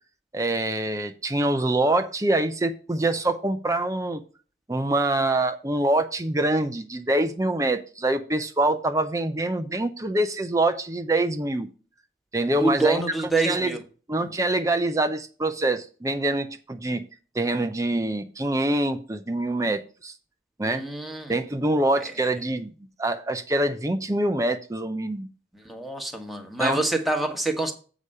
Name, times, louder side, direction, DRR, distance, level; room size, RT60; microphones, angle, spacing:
voice 1, 0.3-4.2 4.7-11.7 12.3-13.0 13.4-13.7 14.1-17.0 17.3-20.1 20.6-20.8 21.3-22.7 23.0-25.3 26.6-26.8, right 1 dB, 20° right, 8 dB, 0.6 m, -25 dB
voice 2, 12.6-13.8 20.6-21.3 25.6-27.7, right 2 dB, ahead, 2 dB, 1.3 m, -26 dB
8.2 x 5.0 x 5.5 m, 0.37 s
head